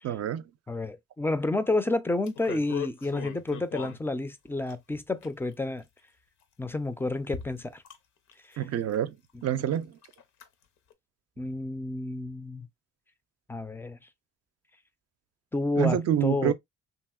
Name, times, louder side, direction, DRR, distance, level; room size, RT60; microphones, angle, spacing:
voice 1, 0.0-0.4 8.6-9.2 9.4-9.9 15.8-16.5, right 10 dB, 55° right, 0.5 m, -27 dB
voice 2, 0.7-5.8 6.6-7.8 11.4-12.7 13.5-14.0 15.5-16.5, left 2 dB, 10° left, 0.3 m, -30 dB
sound 1, 2.2-4.0 4.7-5.5 6.4-6.5 7.2-8.0 8.3-8.6 8.9-9.0 9.4-9.8 10.0-10.4 10.9-11.0, left 8 dB, 75° left, 0.7 m, -39 dB
2.8 x 2.8 x 2.3 m
cardioid pair, 90°, 30 cm